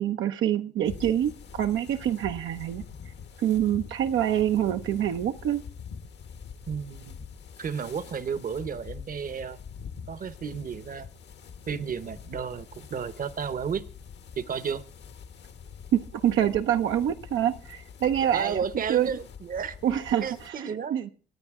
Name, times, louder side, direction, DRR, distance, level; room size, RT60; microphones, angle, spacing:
voice 1, 0.0-2.8 3.4-5.6 15.9-18.6 18.9-19.1 19.8-20.5 20.9-21.1, right 10 dB, 80° right, 5 dB, 0.8 m, -26 dB
sound 1, 0.8-20.5, left 6 dB, 60° left, 1.2 m, -45 dB
voice 2, 6.7-7.2 7.6-9.6 10.1-11.1 11.7-13.8 14.4-14.8 18.2-19.8 20.2-21.0, right 6 dB, 45° right, 15 dB, 0.9 m, -32 dB
26.0 x 9.1 x 3.7 m, 0.40 s
cardioid pair, 90°, 20 cm